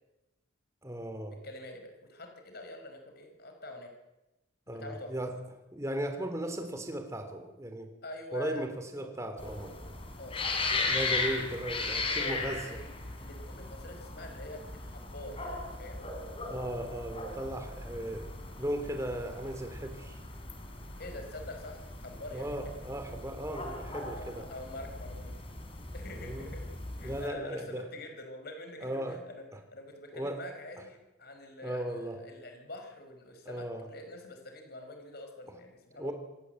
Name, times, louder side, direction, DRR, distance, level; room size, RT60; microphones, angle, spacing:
voice 1, 0.8-1.4 4.7-5.3 5.7-7.9 8.3-9.7 10.7-12.6 16.5-18.3 18.6-20.2 22.3-24.5 26.2-26.5 27.0-27.8 28.8-29.2 30.1-30.4 31.6-32.2 33.4-33.9 36.0-36.1, right 1 dB, 15° right, 6 dB, 3.3 m, -36 dB
voice 2, 1.4-3.9 4.7-5.1 8.0-8.6 9.0-9.1 10.2-10.4 12.0-12.9 13.2-16.0 21.0-22.6 24.1-25.3 25.9-26.6 27.0-29.4 29.7-36.1, left 1 dB, 50° left, 4 dB, 5.1 m, -45 dB
sound 1, 9.4-27.3, left 3 dB, 30° left, 3.8 m, -38 dB
26.5 x 18.5 x 7.9 m, 1.0 s
head